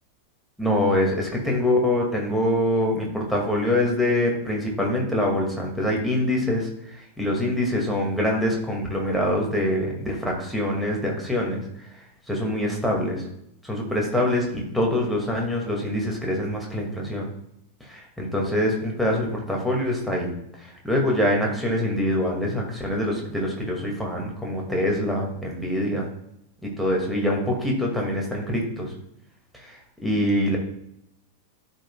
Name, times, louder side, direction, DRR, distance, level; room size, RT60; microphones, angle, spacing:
voice 1, 0.6-6.7 7.2-11.6 12.3-13.2 13.7-17.3 17.9-20.3 20.8-26.1 26.6-28.9 29.6-29.7 30.0-30.6, left 1 dB, ahead, -2 dB, 2.1 m, -24 dB
12.5 x 5.3 x 2.3 m, 0.77 s
figure-of-eight pair, 90°, 0 cm